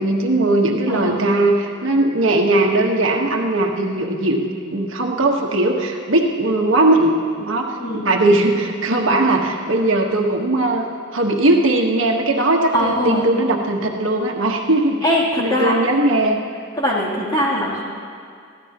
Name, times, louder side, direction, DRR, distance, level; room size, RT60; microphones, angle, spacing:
voice 1, 0.0-10.9 11.1-15.0 15.4-16.4, right 2 dB, 80° right, 1 dB, 1.4 m, -19 dB
voice 2, 0.9-1.2 7.8-8.0 12.7-13.3 15.0-15.8 16.8-17.8, left 1 dB, 20° left, -6 dB, 3.1 m, -21 dB
22.5 x 15.5 x 3.0 m, 2.3 s
head